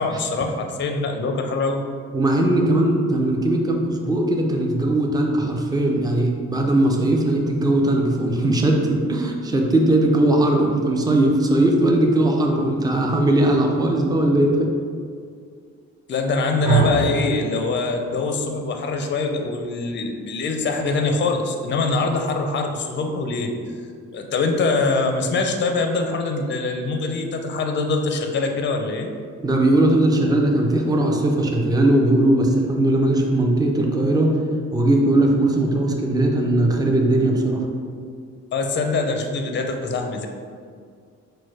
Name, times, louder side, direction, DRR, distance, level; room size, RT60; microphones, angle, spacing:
voice 1, 0.0-1.8 16.1-23.5 24.1-29.1 38.5-40.3, left 3 dB, 40° left, 4 dB, 0.5 m, -23 dB
voice 2, 2.1-14.7 29.4-34.4 34.7-37.7, right 1 dB, 15° right, 1 dB, 0.5 m, -19 dB
sound 1, 16.6-24.9, right 4 dB, 80° right, 1.2 m, -30 dB
4.2 x 2.2 x 4.6 m, 2.1 s
cardioid pair, 90°, 30 cm